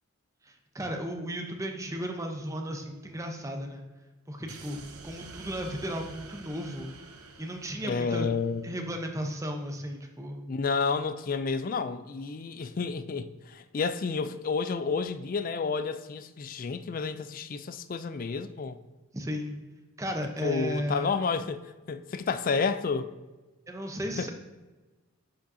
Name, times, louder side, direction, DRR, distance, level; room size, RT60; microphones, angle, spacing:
voice 1, 0.4-3.8 4.3-6.9 7.4-8.3 8.6-10.4 19.1-19.6 20.0-21.1 23.7-24.3, equal, 15° right, 0.7 m, -35 dB
sound 1, 4.5-8.8, right 3 dB, 85° right, 0.8 m, -48 dB
voice 2, 7.8-8.6 10.5-18.8 20.4-23.1 24.2-24.3, left 5 dB, 40° left, 0.3 m, -30 dB
10.0 x 5.2 x 2.7 m
head